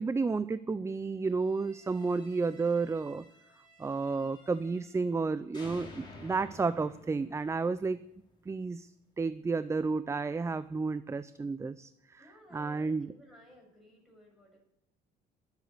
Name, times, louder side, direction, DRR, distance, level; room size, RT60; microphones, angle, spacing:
voice 1, 0.0-3.2 3.8-8.0 8.5-8.9 9.2-12.3 12.5-13.1, right 4 dB, 15° right, 15 dB, 0.5 m, -31 dB
sound 1, 1.4-5.2 5.5-8.6, left 2 dB, 25° left, 5.2 m, -53 dB
voice 2, 5.7-6.4 12.2-14.6, equal, ahead, -2 dB, 7.8 m, -58 dB
22.0 x 8.2 x 6.7 m, 0.78 s
cardioid pair, 110°, 17 cm